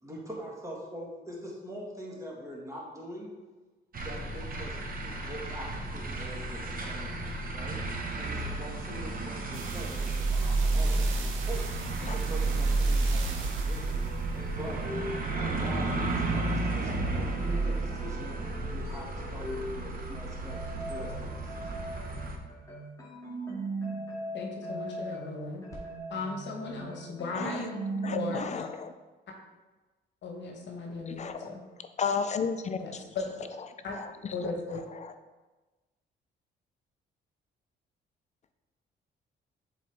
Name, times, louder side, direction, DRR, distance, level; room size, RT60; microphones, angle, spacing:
voice 1, 0.0-3.3 3.9-7.8 8.2-11.6 12.1-14.1 14.5-14.8 15.4-18.3 18.7-21.8, equal, 15° right, -4 dB, 1.8 m, -43 dB
sound 1, 3.9-22.4, right 2 dB, 45° right, 0.9 m, -34 dB
sound 2, 9.5-16.0 16.6-16.7, right 3 dB, 85° right, 0.8 m, -29 dB
sound 3, 13.8-20.1 20.4-28.4, right 2 dB, 15° left, 1.9 m, -40 dB
voice 2, 24.3-25.6 26.1-27.7 28.1-28.7 30.2-31.6 32.8-33.3 33.8-33.9 34.3-34.8, left 3 dB, 65° left, 1 dB, 1.1 m, -36 dB
voice 3, 27.3-27.7 28.0-28.9 31.0-31.5 32.0-33.0 34.0-34.1 35.0-35.1, left 5 dB, 35° left, 9 dB, 0.4 m, -33 dB
7.3 x 3.9 x 3.3 m, 1.2 s
cardioid pair, 90°, 20 cm